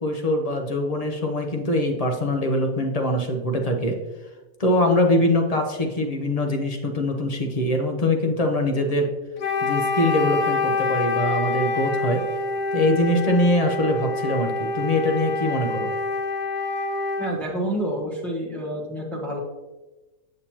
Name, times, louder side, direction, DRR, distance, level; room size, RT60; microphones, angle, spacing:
voice 1, 0.0-4.0 4.6-9.1 9.6-12.2 12.7-15.9, left 1 dB, 35° left, 4 dB, 0.7 m, -23 dB
Wind instrument woodwind instrument, 9.4-17.4, left 3 dB, 85° left, 1.3 m, -26 dB
voice 2, 17.2-19.4, right 1 dB, ahead, -3 dB, 1.2 m, -28 dB
8.5 x 6.5 x 2.9 m, 1.1 s
omnidirectional pair, 1.6 m